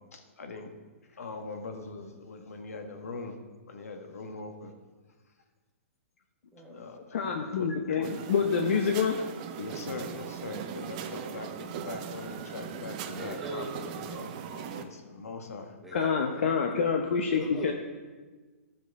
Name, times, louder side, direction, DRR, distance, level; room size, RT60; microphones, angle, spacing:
voice 1, 0.1-0.7 1.2-3.3 3.7-4.7 6.7-8.3 9.6-15.7, left 3 dB, 90° left, 5 dB, 1.4 m, -41 dB
voice 2, 6.5-7.0 13.1-14.4 15.8-16.6 17.3-17.7, right 1 dB, ahead, -4 dB, 1.3 m, -42 dB
voice 3, 7.1-9.2 15.9-17.7, left 6 dB, 55° left, 3 dB, 0.8 m, -27 dB
sound 1, 8.0-14.8, right 8 dB, 30° right, 0.5 m, -39 dB
12.5 x 6.0 x 4.7 m, 1.3 s
hypercardioid pair, 165°, 8 cm